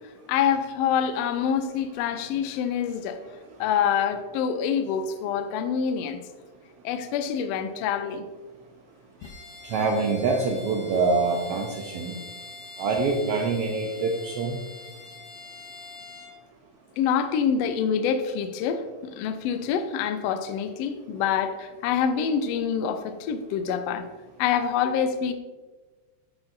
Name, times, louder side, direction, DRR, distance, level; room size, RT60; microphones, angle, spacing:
voice 1, 0.3-3.2 3.6-6.2 6.8-8.2 17.0-24.0 24.4-25.3, left 7 dB, 80° left, 9 dB, 1.5 m, -26 dB
Bowed string instrument, 9.2-16.4, left 2 dB, 30° left, 1.8 m, -44 dB
voice 2, 9.6-12.1 12.8-14.6, right 3 dB, 75° right, 0 dB, 1.4 m, -25 dB
10.0 x 5.7 x 2.6 m, 1.3 s
omnidirectional pair, 3.4 m